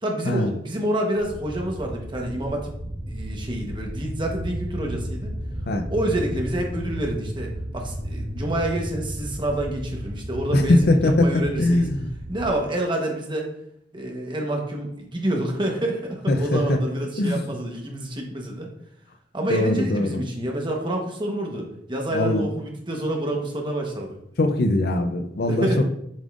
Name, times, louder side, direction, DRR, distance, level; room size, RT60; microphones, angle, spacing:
voice 1, 0.0-2.7 3.1-5.3 5.9-11.9 12.3-13.5 13.9-18.7 19.3-24.2 25.4-25.8, right 1 dB, 25° right, 1 dB, 1.1 m, -28 dB
sound 1, 1.2-12.5, equal, 45° right, 1.7 m, -33 dB
voice 2, 10.5-11.3 11.6-12.1 16.3-16.8 17.2-17.4 19.5-20.2 22.1-22.5 24.4-25.8, left 1 dB, 55° left, 7 dB, 0.6 m, -21 dB
7.3 x 5.2 x 2.5 m, 0.74 s
head